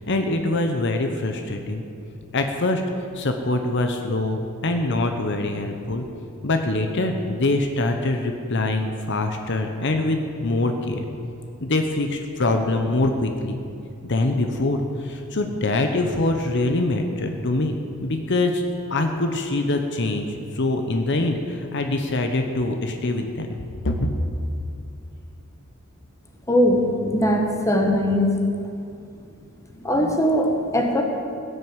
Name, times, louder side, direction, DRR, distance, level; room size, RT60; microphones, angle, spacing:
voice 1, 0.1-1.8 2.3-2.8 3.1-6.0 6.4-11.0 11.6-13.6 14.1-18.6 18.9-20.3 20.5-23.6 23.8-24.1, left 2 dB, 55° left, 5 dB, 1.0 m, -24 dB
voice 2, 26.5-28.3 29.8-31.0, equal, 15° left, 2 dB, 1.4 m, -20 dB
17.0 x 6.7 x 9.0 m, 2.5 s
head